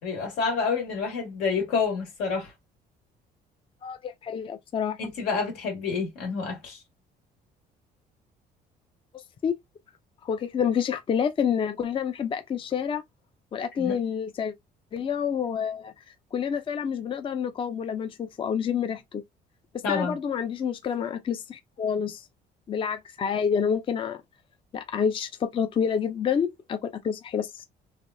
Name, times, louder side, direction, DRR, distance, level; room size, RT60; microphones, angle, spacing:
voice 1, 0.0-2.5 5.0-6.8 13.8-14.0 19.8-20.2, left 5 dB, 90° left, 2.0 m, -28 dB
voice 2, 3.8-5.0 9.1-9.6 10.2-13.0 13.5-14.5 14.9-16.0 16.3-19.2 19.9-22.2 22.7-24.2 24.7-27.7, left 7 dB, 30° left, 0.4 m, -28 dB
3.4 x 3.0 x 2.5 m
cardioid pair, 110°, 17 cm